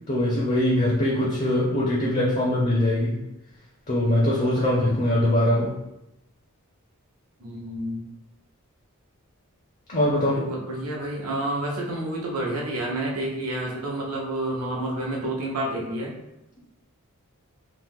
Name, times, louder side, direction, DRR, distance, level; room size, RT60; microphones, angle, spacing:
voice 1, 0.1-3.2 3.9-5.7 9.9-10.4, left 1 dB, 35° left, -5 dB, 0.5 m, -22 dB
voice 2, 7.4-8.1 10.2-16.1, right 1 dB, 85° right, -3 dB, 0.8 m, -29 dB
2.9 x 2.0 x 3.4 m, 0.90 s
head